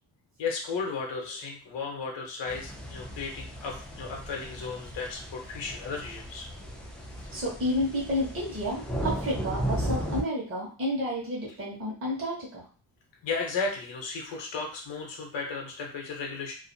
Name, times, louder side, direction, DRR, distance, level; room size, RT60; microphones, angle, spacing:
voice 1, 0.4-6.5 13.2-16.5, left 4 dB, 85° left, 0 dB, 0.7 m, -34 dB
sound 1, 2.5-10.2, equal, 5° left, 0.3 m, -36 dB
voice 2, 7.3-12.6, left 1 dB, 30° right, -5 dB, 0.9 m, -31 dB
2.4 x 2.4 x 2.6 m, 0.39 s
wide cardioid pair, 155°, 43 cm